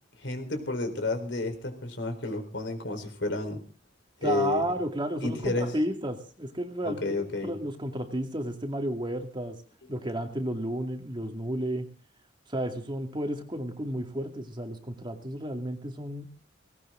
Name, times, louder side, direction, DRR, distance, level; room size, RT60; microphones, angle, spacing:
voice 1, 0.2-3.6 4.2-4.6 5.2-5.7 6.8-7.5, left 2 dB, 70° left, 6 dB, 4.2 m, -31 dB
voice 2, 4.2-7.0 7.4-9.6 9.9-11.9 12.5-16.2, right 1 dB, 25° right, 4 dB, 2.2 m, -32 dB
19.5 x 18.5 x 3.8 m, 0.39 s
head